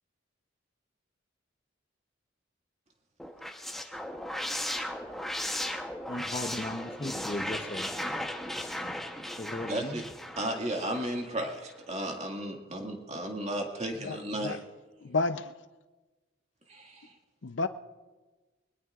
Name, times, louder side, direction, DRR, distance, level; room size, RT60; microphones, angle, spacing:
sound 1, 3.2-11.3, left 1 dB, ahead, 0.9 m, -36 dB
voice 1, 6.1-7.9 8.6-8.9 9.4-10.0, left 1 dB, 30° left, 0.8 m, -37 dB
voice 2, 9.7-10.1 10.4-14.6 16.7-17.1, right 1 dB, 35° right, 2.0 m, -34 dB
voice 3, 15.0-15.4 17.4-17.7, left 3 dB, 70° left, 0.6 m, -29 dB
22.0 x 20.0 x 2.5 m
head